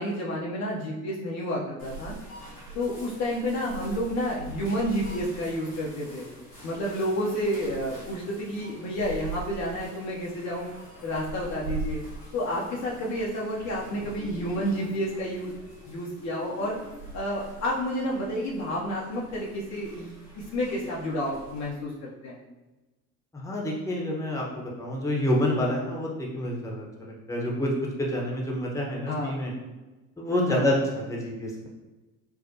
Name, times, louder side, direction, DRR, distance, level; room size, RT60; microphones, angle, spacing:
voice 1, 0.0-2.2 2.7-6.3 6.6-10.7 11.0-12.0 12.3-15.5 15.8-16.8 17.1-22.4 29.1-29.4 30.5-30.7, equal, 40° left, -4 dB, 0.7 m, -30 dB
sound 1, 1.8-21.7, right 2 dB, 85° left, 1.3 m, -42 dB
voice 2, 23.3-27.7 28.0-29.5 30.2-31.7, left 1 dB, 5° left, -2 dB, 0.9 m, -28 dB
4.5 x 2.1 x 2.7 m, 1.1 s
figure-of-eight pair, 60°, 45 cm